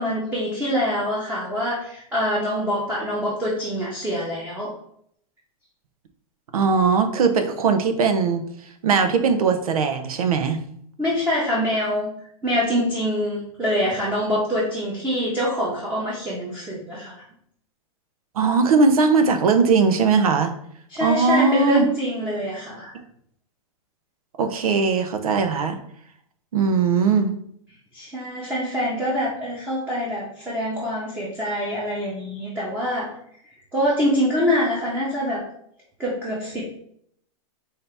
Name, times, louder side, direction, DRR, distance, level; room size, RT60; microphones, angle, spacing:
voice 1, 0.0-4.7 11.0-12.1 12.4-17.2 20.9-22.9 27.9-33.1 33.7-35.4 36.0-36.6, equal, 10° right, -6 dB, 1.1 m, -25 dB
voice 2, 6.5-8.4 8.8-10.7 18.3-20.5 21.0-21.9 24.4-25.8 26.5-27.4, right 5 dB, 85° right, 8 dB, 0.7 m, -19 dB
5.5 x 2.8 x 3.4 m, 0.68 s
hypercardioid pair, 135°, 18 cm